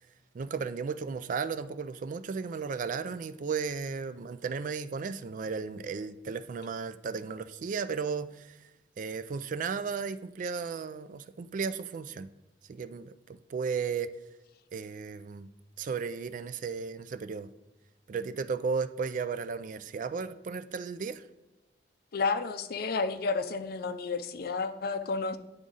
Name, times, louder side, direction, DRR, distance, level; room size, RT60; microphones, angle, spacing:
voice 1, 0.3-8.6 9.0-12.3 12.7-14.1 14.7-15.5 15.8-17.5 18.1-21.2, right 5 dB, 50° right, 12 dB, 0.3 m, -34 dB
voice 2, 22.1-25.4, left 4 dB, 60° left, 11 dB, 0.5 m, -31 dB
9.6 x 3.7 x 3.9 m, 1.0 s
head